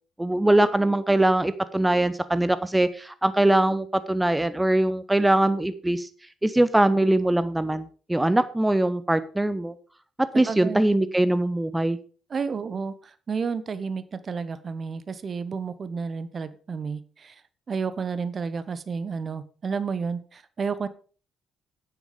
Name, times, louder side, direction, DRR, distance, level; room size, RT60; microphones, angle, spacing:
voice 1, 0.2-6.1 6.4-9.7 10.4-12.0, right 1 dB, 10° right, 13 dB, 0.8 m, -22 dB
voice 2, 10.5-10.8 12.3-17.3 17.7-20.9, right 5 dB, 40° right, 14 dB, 1.0 m, -31 dB
9.5 x 8.8 x 5.1 m, 0.39 s
figure-of-eight pair, 45°, 0 cm